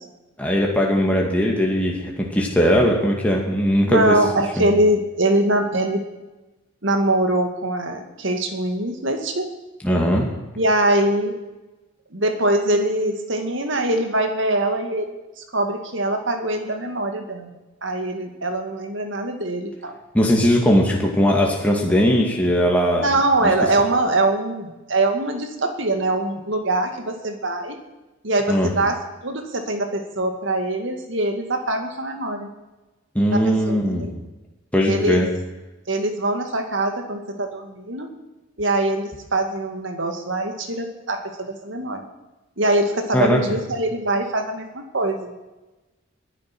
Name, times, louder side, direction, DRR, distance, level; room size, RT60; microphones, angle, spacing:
voice 1, 0.4-4.2 4.6-4.7 9.8-10.3 20.1-23.1 23.4-23.5 28.5-28.7 33.1-34.1 34.7-35.3 43.1-43.6, equal, 5° left, -1 dB, 2.3 m, -19 dB
voice 2, 3.8-6.1 6.8-9.5 10.6-11.4 12.1-15.1 15.5-19.9 23.0-27.8 28.2-28.9 29.2-32.5 33.3-34.1 34.9-35.2 35.9-38.1 38.6-42.0 42.6-45.3, right 1 dB, 65° right, 5 dB, 2.3 m, -23 dB
21.0 x 10.5 x 6.2 m, 1.1 s
head